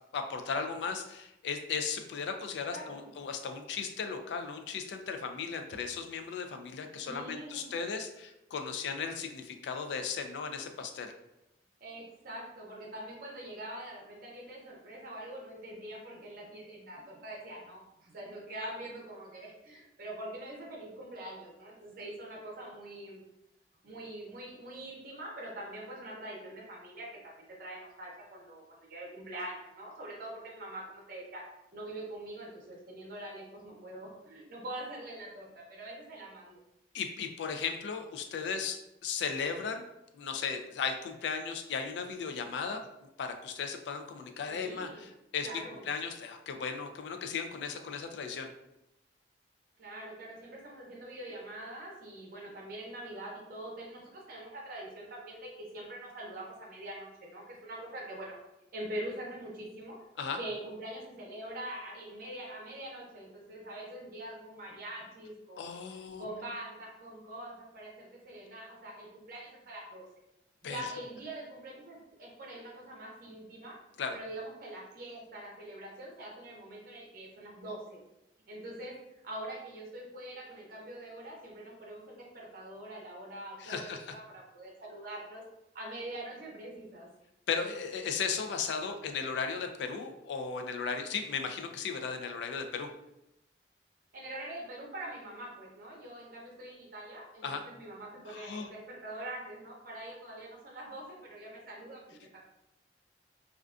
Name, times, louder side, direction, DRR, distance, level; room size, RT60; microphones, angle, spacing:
voice 1, 0.1-11.1 36.9-39.8 40.1-42.8 43.2-48.5 60.2-60.4 65.6-66.2 70.6-70.9 74.0-74.2 83.6-84.1 87.5-92.9 97.4-97.6 98.3-98.7, left 5 dB, 75° left, 6 dB, 0.3 m, -36 dB
voice 2, 2.7-3.1 7.1-7.8 11.8-23.2 23.8-31.4 31.7-36.6 44.5-45.1 45.4-45.8 49.8-58.4 58.7-60.0 60.4-65.8 66.2-70.0 70.6-73.8 74.1-78.0 78.5-78.9 79.2-85.4 85.7-87.1 94.1-102.4, right 1 dB, 55° right, -2 dB, 0.6 m, -44 dB
2.4 x 2.2 x 2.4 m, 0.89 s
head